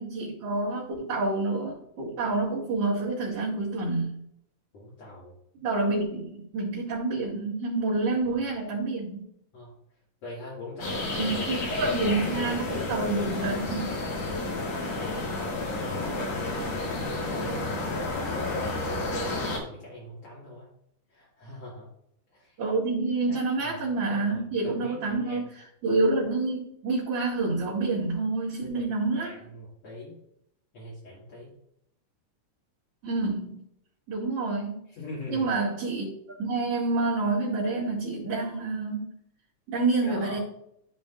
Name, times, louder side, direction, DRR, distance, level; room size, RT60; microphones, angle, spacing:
voice 1, 0.0-4.2 5.6-9.2 11.2-14.0 22.6-25.4 25.8-29.3 33.0-33.6 34.1-34.8 35.3-36.1 36.4-39.1 39.7-40.4, right 3 dB, 50° right, -9 dB, 3.2 m, -28 dB
voice 2, 4.7-5.3 8.2-8.4 9.5-9.7 10.2-11.3 12.0-13.1 14.5-20.7 21.1-21.9 22.3-22.6 23.3-25.6 29.1-30.2 30.7-31.5 34.9-35.5 40.0-40.4, left 1 dB, 55° left, -7 dB, 3.2 m, -43 dB
sound 1, 10.8-19.6, left 2 dB, 75° left, 3.6 m, -31 dB
14.0 x 5.1 x 2.5 m, 0.74 s
omnidirectional pair, 3.6 m